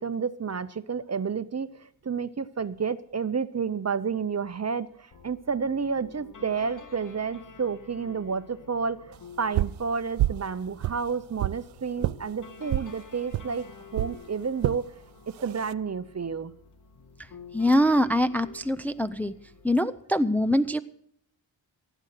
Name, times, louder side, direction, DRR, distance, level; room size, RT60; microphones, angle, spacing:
voice 1, 0.0-1.7 2.0-13.7 13.9-14.8 15.4-16.5, right 5 dB, 35° right, 14 dB, 0.7 m, -30 dB
sound 1, 5.1-19.7, left 5 dB, 40° left, 1.4 m, -50 dB
sound 2, 9.5-9.8 10.2-10.5 10.8-11.6 12.0-12.2 12.7-12.9 13.3-13.5 13.9-14.1 14.6-14.8 15.4-15.7, right 15 dB, 90° right, 0.5 m, -27 dB
voice 2, 17.5-19.3 19.6-20.8, equal, 5° left, 10 dB, 0.6 m, -23 dB
16.0 x 9.2 x 6.6 m, 0.68 s
cardioid pair, 80°, 46 cm